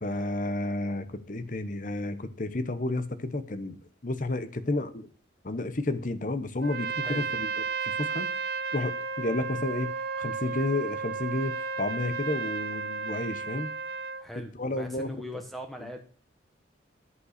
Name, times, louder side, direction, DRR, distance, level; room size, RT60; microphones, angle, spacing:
voice 1, 0.0-3.8 4.0-5.1 5.4-13.7 14.6-15.1 15.8-15.9, left 2 dB, 45° left, 12 dB, 0.9 m, -31 dB
Trumpet, 6.6-14.3, right 5 dB, 55° right, 0.5 m, -33 dB
voice 2, 14.2-16.0, left 1 dB, ahead, 5 dB, 1.2 m, -40 dB
11.0 x 5.5 x 6.5 m, 0.42 s
head